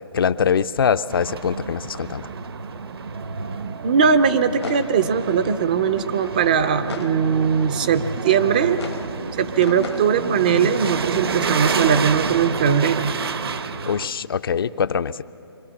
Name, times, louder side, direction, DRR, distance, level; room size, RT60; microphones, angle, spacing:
voice 1, 0.1-2.3 13.9-15.2, left 7 dB, 60° left, 14 dB, 0.5 m, -23 dB
sound 1, 1.1-14.1, right 5 dB, 65° right, 0.9 m, -29 dB
sound 2, 3.1-4.5 4.9-5.7 6.6-7.8 8.3-9.0 10.0-11.4 11.7-12.4, right 4 dB, 85° right, 5.4 m, -44 dB
sound 3, 3.7-7.7 8.1-11.2 11.6-12.9, left 5 dB, 80° left, 1.4 m, -39 dB
voice 2, 3.8-8.8 9.4-13.1, right 7 dB, 20° right, 11 dB, 0.4 m, -20 dB
24.0 x 17.5 x 7.2 m, 2.7 s
hypercardioid pair, 165°, 14 cm